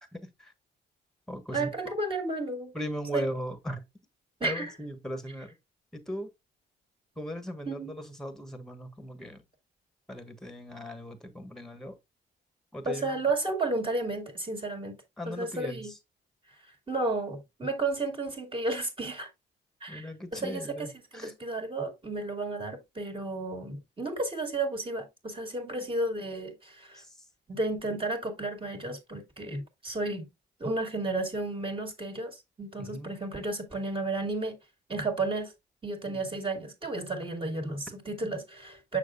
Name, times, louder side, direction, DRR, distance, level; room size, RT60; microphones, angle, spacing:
voice 1, 0.1-0.5 1.3-1.9 2.7-3.8 4.4-5.5 5.9-6.3 7.2-9.4 10.1-12.0 12.7-13.2 15.2-15.9 19.9-21.3 26.9-27.1 32.8-33.1 36.1-36.2, equal, ahead, 1.4 m, -38 dB
voice 2, 1.5-2.7 3.1-3.3 4.4-4.7 7.7-7.9 12.9-15.0 15.3-15.9 16.9-19.3 19.8-20.9 21.1-27.0 27.5-30.3 30.6-34.6 34.9-35.5 35.8-39.0, right 2 dB, 25° right, 2.1 m, -32 dB
6.5 x 6.1 x 2.5 m
cardioid pair, 90°, 20 cm